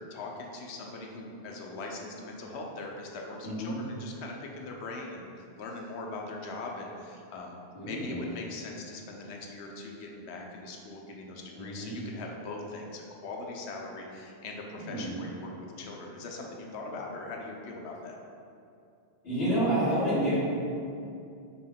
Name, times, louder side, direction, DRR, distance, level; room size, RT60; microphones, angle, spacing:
voice 1, 0.1-7.6 7.8-15.5 15.8-18.2, left 3 dB, 85° left, 0 dB, 0.9 m, -41 dB
voice 2, 3.4-3.8 7.7-8.2 11.6-12.0 14.8-15.2 19.2-20.4, right 1 dB, 65° left, -12 dB, 1.7 m, -29 dB
5.3 x 2.2 x 3.5 m, 2.5 s
omnidirectional pair, 1.1 m